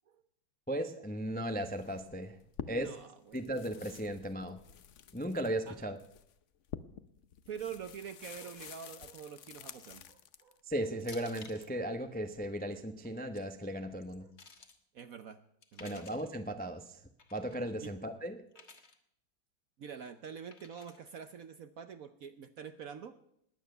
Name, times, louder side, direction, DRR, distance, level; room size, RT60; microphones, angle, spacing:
voice 1, 0.7-2.4 2.7-2.9 3.3-4.6 5.1-6.0 10.7-14.3 15.8-17.0 17.3-18.4, right 1 dB, 15° left, 7 dB, 0.3 m, -36 dB
sound 1, 1.7-3.0 3.3-10.6 11.0-11.7, left 8 dB, 65° left, 0.7 m, -49 dB
voice 2, 2.7-3.5 5.7-5.8 7.5-10.6 14.2-14.3 14.9-15.4 15.7-16.1 17.8-17.9 18.5-18.7 19.8-23.1, right 7 dB, 65° right, 10 dB, 0.9 m, -46 dB
sound 2, 9.7-10.1 11.0-11.7 13.0-13.4 14.0-14.8 15.6-16.3 17.2-17.6 18.5-19.0 20.5-21.1, left 4 dB, 35° left, 1.6 m, -54 dB
20.0 x 9.3 x 6.7 m, 0.73 s
omnidirectional pair, 2.2 m